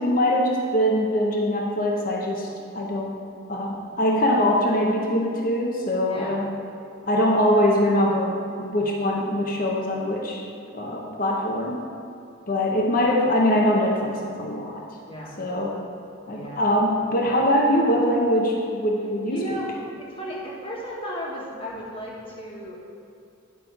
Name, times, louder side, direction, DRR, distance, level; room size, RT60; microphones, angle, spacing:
voice 1, 0.0-2.5 2.7-3.1 3.5-6.5 7.0-10.4 10.7-11.8 12.5-14.8 15.4-15.8 16.3-19.6, equal, 40° left, -1 dB, 0.8 m, -23 dB
voice 2, 6.0-6.4 15.0-15.4 16.3-16.7 17.1-17.4 19.3-19.7 20.0-22.8, equal, 25° left, -4 dB, 1.5 m, -35 dB
10.0 x 5.6 x 4.6 m, 2.6 s
head